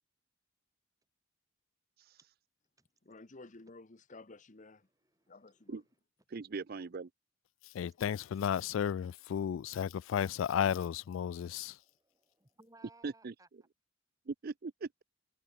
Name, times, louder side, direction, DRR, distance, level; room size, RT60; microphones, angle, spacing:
voice 1, 3.0-4.9 5.3-5.8, left 2 dB, 40° left, 1.0 m, -53 dB
voice 2, 5.0-5.8 7.8-8.0 8.2-8.3 9.9-10.8 11.1-13.5, right 2 dB, 15° right, 5.3 m, -65 dB
voice 3, 6.3-7.1 13.0-13.3 14.3-14.9, right 4 dB, 50° right, 0.5 m, -40 dB
voice 4, 7.7-11.8, left 8 dB, 75° left, 0.3 m, -33 dB
head